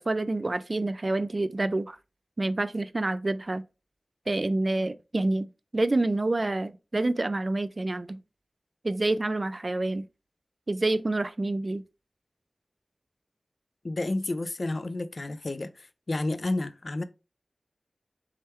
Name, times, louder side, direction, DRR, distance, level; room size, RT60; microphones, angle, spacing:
voice 1, 0.0-2.0 2.4-3.6 4.3-8.2 8.8-10.1 10.7-11.8, right 2 dB, 45° right, 0.3 m, -28 dB
voice 2, 13.8-17.0, left 2 dB, 55° left, 0.4 m, -31 dB
3.6 x 3.2 x 4.2 m
wide cardioid pair, 55°, 0 cm